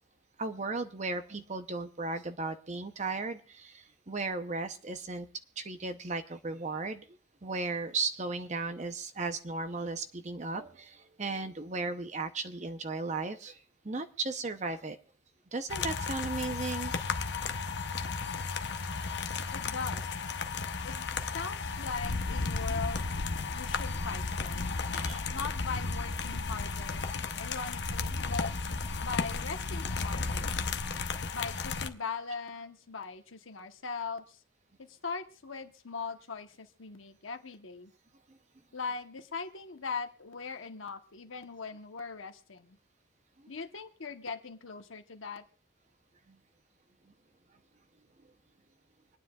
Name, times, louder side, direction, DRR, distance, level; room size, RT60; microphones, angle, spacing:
voice 1, 0.4-5.3 5.6-7.0 7.4-13.6 13.8-15.0 15.5-16.9 19.4-19.5 24.9-25.2 26.5-26.6 30.9-31.0, right 3 dB, 35° right, 9 dB, 0.7 m, -36 dB
sound 1, 15.7-31.9, left 4 dB, 55° left, 0.8 m, -34 dB
voice 2, 19.5-20.1 20.8-23.1 23.5-24.7 25.3-27.0 27.4-28.5 29.0-30.5 31.3-34.4 34.8-37.9 38.7-42.8 43.5-45.4, left 5 dB, 80° left, 6 dB, 1.0 m, -40 dB
25.5 x 9.6 x 2.4 m, 0.41 s
head